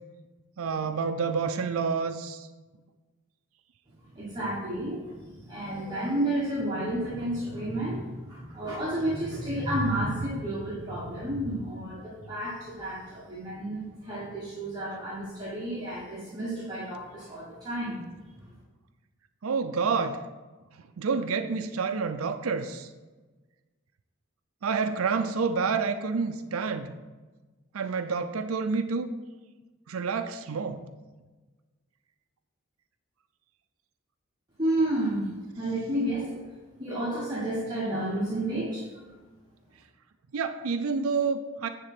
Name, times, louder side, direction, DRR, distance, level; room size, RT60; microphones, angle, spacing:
voice 1, 0.6-2.5 19.4-20.2 21.0-22.9 24.6-26.9 27.7-29.1 29.9-30.8 40.3-41.7, right 5 dB, 90° right, 8 dB, 0.5 m, -28 dB
voice 2, 4.1-18.0 34.6-36.5 36.8-38.8, right 1 dB, 20° right, -7 dB, 1.3 m, -31 dB
9.7 x 3.7 x 5.9 m, 1.2 s
head